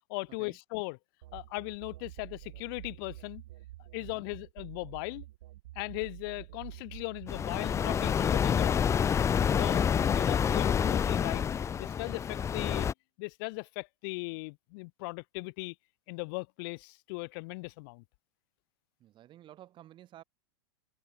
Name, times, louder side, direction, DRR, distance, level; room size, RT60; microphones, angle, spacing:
voice 1, 0.1-1.0 1.3-3.4 3.9-5.3 5.8-9.0 9.6-11.4 11.8-12.9 13.2-15.7 16.1-18.0, left 29 dB, 55° left, 1.0 m, -38 dB
sound 1, 1.2-8.8, right 16 dB, 70° right, 0.9 m, -48 dB
sound 2, 7.3-12.9, left 7 dB, 20° left, 0.7 m, -28 dB
voice 2, 19.0-20.2, right 13 dB, 35° right, 2.7 m, -54 dB
hypercardioid pair, 105°, 14 cm